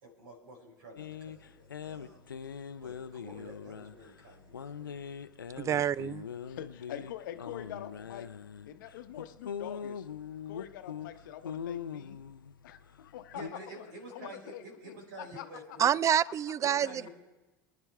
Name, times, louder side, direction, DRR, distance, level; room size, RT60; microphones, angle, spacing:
voice 1, 0.0-2.2 2.8-5.0 13.3-15.9 16.6-17.1, right 1 dB, 75° right, 4.6 m, -49 dB
sound 1, 1.0-13.5, left 7 dB, 90° left, 0.4 m, -42 dB
voice 2, 5.6-6.2 15.8-17.1, right 9 dB, 30° right, 0.3 m, -27 dB
voice 3, 6.5-8.3 8.7-10.1 10.5-12.2 12.6-13.9 14.1-15.8, left 11 dB, 70° left, 0.9 m, -45 dB
25.0 x 10.5 x 3.4 m
hypercardioid pair, 75°, 11 cm